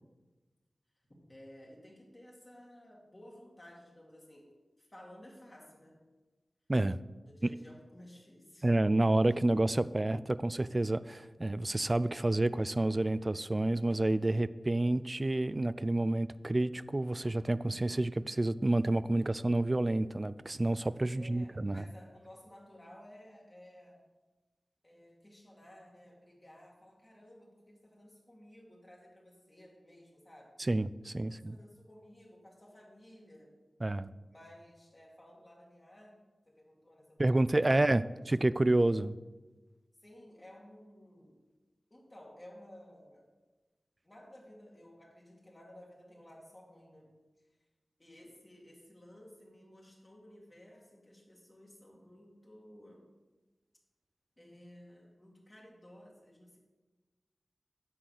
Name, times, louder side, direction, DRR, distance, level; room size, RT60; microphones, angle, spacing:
voice 1, 1.3-4.5 4.8-6.0 7.2-8.7 21.1-24.1 24.8-30.6 31.3-33.5 34.3-36.2 36.5-38.2 40.0-41.4 41.9-43.3 44.0-47.1 47.4-47.6 48.0-53.1 54.4-56.6, left 1 dB, 30° left, -3 dB, 2.2 m, -55 dB
voice 2, 8.6-21.8 30.7-31.6 33.8-34.1 37.2-39.2, right 2 dB, 35° right, 16 dB, 0.3 m, -29 dB
9.7 x 3.9 x 6.6 m, 1.2 s
cardioid pair, 40°, 0 cm